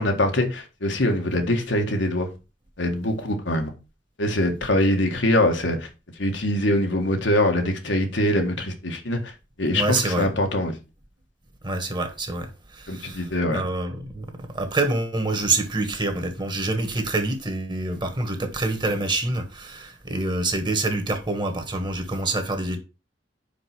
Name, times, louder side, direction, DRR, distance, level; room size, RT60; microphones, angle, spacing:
voice 1, 0.0-2.3 2.8-3.7 4.2-5.9 6.2-9.3 9.6-10.7 12.9-13.6, left 1 dB, 85° left, 1.7 m, -23 dB
voice 2, 9.7-10.3 11.6-22.8, right 2 dB, 25° right, 1.5 m, -26 dB
5.4 x 5.2 x 6.0 m
head